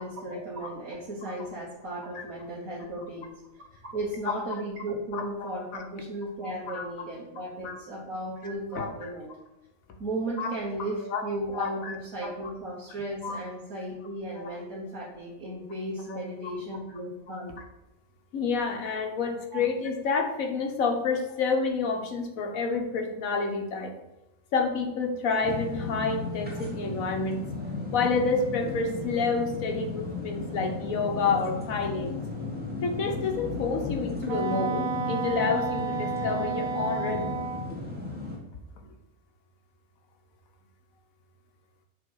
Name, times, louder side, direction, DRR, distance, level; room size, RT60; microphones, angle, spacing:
voice 1, 0.0-9.3 10.0-17.6 19.5-19.7, right 1 dB, 90° right, -6 dB, 1.7 m, -35 dB
voice 2, 5.1-5.6 6.4-6.8 7.6-7.7 8.4-8.9 10.4-10.5 11.0-11.2 11.5-11.9 13.2-13.4 14.4-14.5 16.1-16.2 18.3-23.9 24.5-27.4 27.9-32.1 32.8-37.4, left 4 dB, 80° left, 3 dB, 1.4 m, -29 dB
sound 1, 25.4-38.4, left 3 dB, 5° right, 1.6 m, -35 dB
Wind instrument woodwind instrument, 34.3-37.7, right 5 dB, 60° right, 0.7 m, -31 dB
6.7 x 3.7 x 5.5 m, 0.94 s
omnidirectional pair, 1.4 m